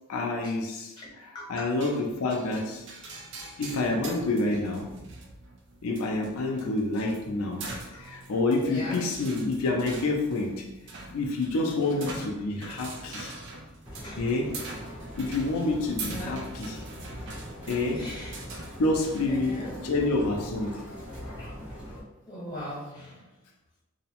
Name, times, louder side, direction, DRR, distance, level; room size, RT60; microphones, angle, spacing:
voice 1, 0.1-0.9 1.2-2.8 3.6-4.9 5.8-10.7 11.1-13.3 14.2-14.6 15.2-16.8 17.7-18.1 18.8-20.8, left 2 dB, 85° left, 0 dB, 0.4 m, -28 dB
voice 2, 1.3-1.7 7.9-8.2 8.6-9.0 11.7-12.1 13.9-14.2 15.5-15.6 16.0-16.3 17.8-18.4 19.3-19.7 21.4-22.0 22.3-23.3, equal, 20° left, -8 dB, 1.0 m, -40 dB
sound 1, 1.8-19.3, right 3 dB, 55° right, 0.4 m, -43 dB
sound 2, 13.8-22.0, equal, 5° right, 0.7 m, -42 dB
2.6 x 2.0 x 2.8 m, 0.99 s
head